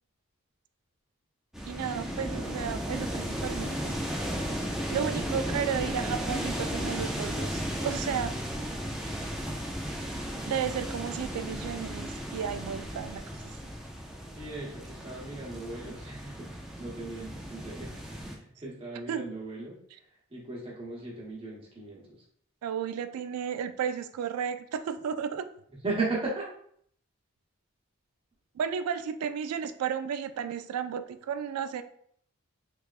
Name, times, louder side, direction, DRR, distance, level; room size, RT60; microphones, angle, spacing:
sound 1, 1.5-18.4, equal, ahead, 0.3 m, -35 dB
voice 1, 1.7-4.0 4.9-8.4 10.5-13.2 13.6-13.7 19.1-19.3 22.6-25.5 28.6-31.8, right 8 dB, 85° right, 13 dB, 0.3 m, -33 dB
voice 2, 14.4-16.5 16.8-17.9 18.2-22.2 25.8-26.4, right 3 dB, 25° right, -4 dB, 1.0 m, -37 dB
3.4 x 3.2 x 2.4 m, 0.66 s
head